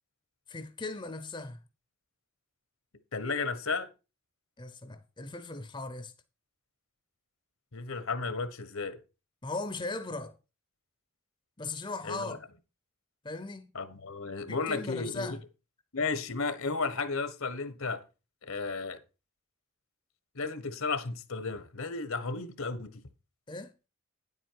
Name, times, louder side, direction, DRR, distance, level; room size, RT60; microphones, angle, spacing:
voice 1, 0.5-1.6 4.6-6.1 9.4-10.3 11.6-12.4 13.2-13.7 14.5-15.4 23.5-23.7, left 3 dB, 20° left, 0.7 m, -38 dB
voice 2, 3.1-3.9 7.7-9.0 12.0-12.4 13.7-15.4 15.9-18.0 18.4-19.0 20.3-22.9, left 4 dB, 75° left, 1.3 m, -33 dB
9.9 x 8.1 x 4.7 m
head